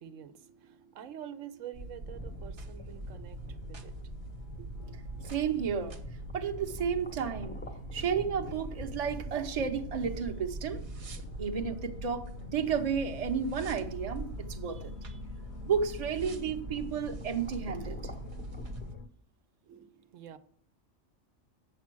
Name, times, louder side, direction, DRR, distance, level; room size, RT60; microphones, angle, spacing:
voice 1, 0.0-4.1 4.8-4.9 19.6-20.4, right 10 dB, 85° right, 1.1 m, -47 dB
sound 1, 1.7-19.0, right 2 dB, 55° right, 1.1 m, -43 dB
sound 2, 2.0-19.0, left 1 dB, 10° left, 0.6 m, -48 dB
sound 3, 2.8-19.1, left 4 dB, 65° left, 1.0 m, -50 dB
voice 2, 5.2-5.9 6.3-7.6 7.9-10.8 11.4-15.2 15.7-18.0, right 7 dB, 35° right, 0.8 m, -32 dB
8.3 x 7.3 x 6.1 m
omnidirectional pair, 1.3 m